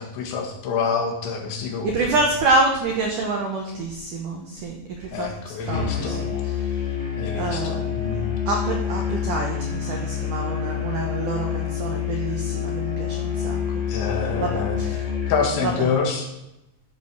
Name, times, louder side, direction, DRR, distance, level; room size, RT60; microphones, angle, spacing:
voice 1, 0.0-2.1 5.1-6.2 7.2-8.3 13.9-14.8 15.3-16.3, left 5 dB, 75° left, 0 dB, 3.9 m, -27 dB
voice 2, 1.8-5.3 5.6-6.6 7.4-7.9 8.5-13.8 14.4-15.0 15.6-15.9, right 3 dB, 85° right, 1 dB, 1.8 m, -27 dB
Musical instrument, 5.7-15.6, left 8 dB, 25° left, 1.6 m, -27 dB
13.5 x 4.6 x 6.0 m, 0.89 s
omnidirectional pair, 5.4 m